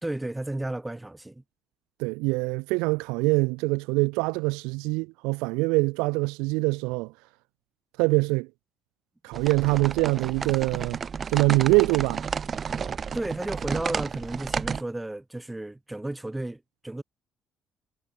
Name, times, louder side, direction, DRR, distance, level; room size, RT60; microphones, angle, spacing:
voice 1, 0.0-1.4 13.1-17.0, right 1 dB, 10° right, 3.0 m, -33 dB
voice 2, 2.0-7.1 8.0-8.5 9.2-11.0 11.3-12.3, right 27 dB, 70° right, 0.4 m, -24 dB
sound 1, 9.3-14.8, right 6 dB, 40° right, 1.7 m, -32 dB
hypercardioid pair, 50°, 0 cm